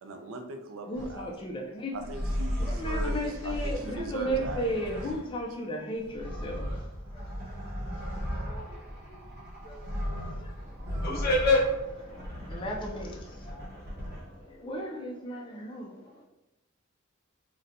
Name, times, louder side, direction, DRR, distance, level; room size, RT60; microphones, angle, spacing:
voice 1, 0.0-1.6 1.9-5.4, right 2 dB, 75° right, 6 dB, 0.4 m, -40 dB
voice 2, 0.9-1.9 2.6-6.8 7.1-7.2 8.4-9.2 9.6-9.9 12.1-13.7 14.1-14.2 14.6-15.9, equal, 25° left, 0 dB, 0.4 m, -35 dB
sound 1, 0.9-1.3 1.9-5.4 6.0-14.4, equal, 45° right, 0.9 m, -36 dB
voice 3, 10.8-12.4 13.9-14.2 14.6-14.7, left 1 dB, 50° left, -3 dB, 0.9 m, -28 dB
4.0 x 2.1 x 2.5 m, 0.89 s
head